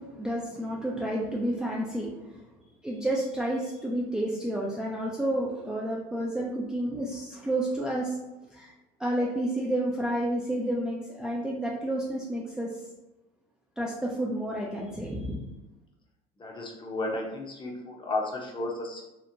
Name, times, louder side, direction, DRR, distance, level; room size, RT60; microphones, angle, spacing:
voice 1, 0.0-2.4 2.8-8.2 8.5-8.7 9.0-12.8 13.8-15.4, right 1 dB, 5° right, -4 dB, 0.4 m, -30 dB
voice 2, 16.4-19.0, left 2 dB, 25° left, -1 dB, 0.7 m, -33 dB
2.9 x 2.1 x 2.6 m, 0.98 s
supercardioid pair, 95°, 20 cm